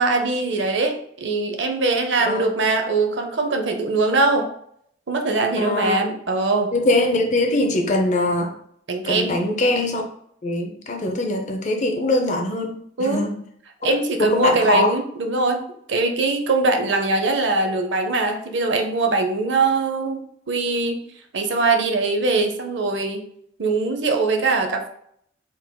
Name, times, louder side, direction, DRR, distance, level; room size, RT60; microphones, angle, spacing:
voice 1, 0.0-4.5 5.1-6.7 8.9-9.4 13.0-13.3 13.8-21.0 21.3-23.3 23.6-24.9, right 3 dB, 70° right, 4 dB, 0.6 m, -22 dB
voice 2, 5.6-6.0 6.7-8.5 9.1-10.0 10.4-13.4 14.2-14.9, left 2 dB, 40° left, 3 dB, 0.6 m, -22 dB
4.4 x 3.8 x 2.2 m, 0.68 s
head